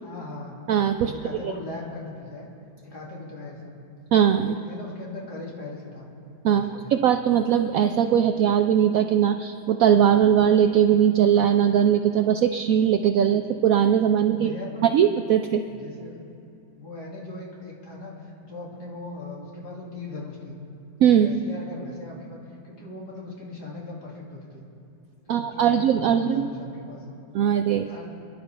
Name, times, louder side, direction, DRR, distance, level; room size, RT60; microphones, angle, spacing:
voice 1, 0.0-0.6 1.0-2.5 2.8-3.7 4.4-6.1 6.5-7.1 14.3-14.8 15.7-16.2 16.8-20.6 21.1-22.4 22.6-24.6 25.3-27.2 27.9-28.1, left 2 dB, 60° left, -4 dB, 2.9 m, -39 dB
voice 2, 0.7-1.1 4.1-4.5 6.4-6.6 6.9-14.5 14.9-15.6 21.0-21.3 25.3-26.5 27.3-27.9, right 9 dB, 75° right, 7 dB, 0.8 m, -20 dB
27.0 x 11.0 x 3.3 m, 2.6 s
omnidirectional pair, 1.9 m